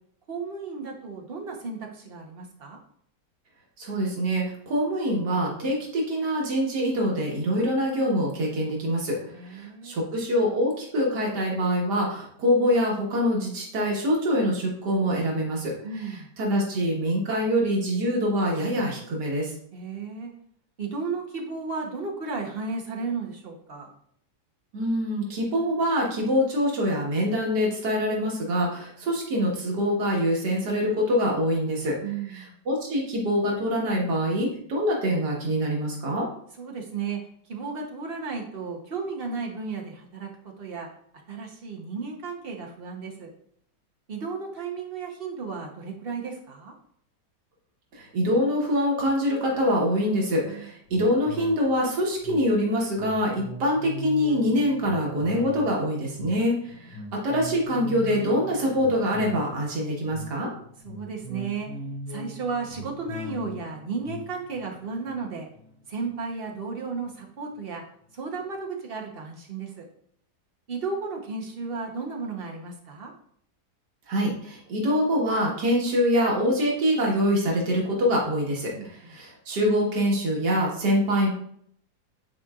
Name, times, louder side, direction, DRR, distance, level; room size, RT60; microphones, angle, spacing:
voice 1, 0.3-2.8 9.3-10.0 15.8-16.3 19.7-20.3 20.8-23.9 32.0-32.5 36.6-37.2 37.5-40.9 41.3-43.3 44.1-46.7 50.5-50.7 56.7-56.9 60.8-61.7 62.1-65.5 65.9-67.8 68.1-69.9 70.7-73.1 78.7-79.1, right 4 dB, 40° right, 1 dB, 1.1 m, -34 dB
voice 2, 3.8-9.2 9.5-19.5 24.7-31.9 32.3-36.3 47.9-60.5 74.1-81.3, equal, 90° right, -2 dB, 2.0 m, -25 dB
sound 1, 50.9-66.6 67.0-67.1, left 1 dB, 35° left, 2.3 m, -40 dB
9.6 x 4.4 x 2.4 m, 0.65 s
omnidirectional pair, 1.7 m